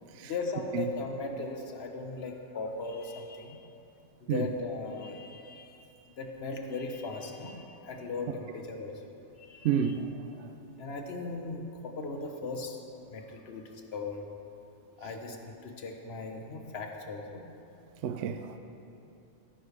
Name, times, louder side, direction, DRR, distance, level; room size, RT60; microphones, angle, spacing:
voice 1, 0.2-3.7 4.3-5.9 6.2-9.0 9.4-9.9 10.8-12.8 13.1-14.3 15.0-17.5, left 3 dB, 55° left, 1.2 m, -38 dB
voice 2, 9.6-10.5 18.0-18.6, right 8 dB, 65° right, 0.8 m, -30 dB
16.0 x 9.7 x 3.3 m
omnidirectional pair, 1.4 m